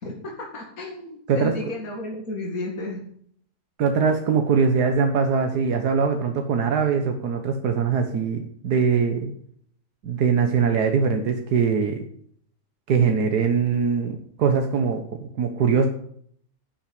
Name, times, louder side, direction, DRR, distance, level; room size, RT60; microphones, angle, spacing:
voice 1, 0.0-3.0, left 2 dB, 60° left, -1 dB, 2.7 m, -33 dB
voice 2, 3.8-9.3 10.0-12.0 12.9-15.0 15.4-15.9, right 6 dB, 90° right, 5 dB, 1.7 m, -22 dB
11.0 x 7.7 x 8.7 m, 0.63 s
omnidirectional pair, 1.7 m